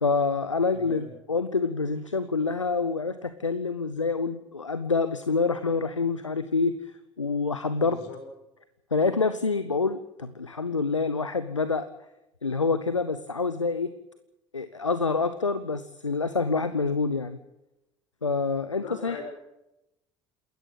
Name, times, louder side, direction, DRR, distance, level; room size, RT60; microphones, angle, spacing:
voice 1, 0.0-8.0 8.9-11.9 12.4-13.9 14.5-17.4 18.2-19.2, left 4 dB, 85° left, 12 dB, 0.8 m, -27 dB
voice 2, 0.7-1.1 7.9-8.2 18.8-19.2, left 5 dB, 65° left, 4 dB, 6.5 m, -40 dB
28.0 x 13.5 x 8.1 m, 0.90 s
figure-of-eight pair, 60°, 16 cm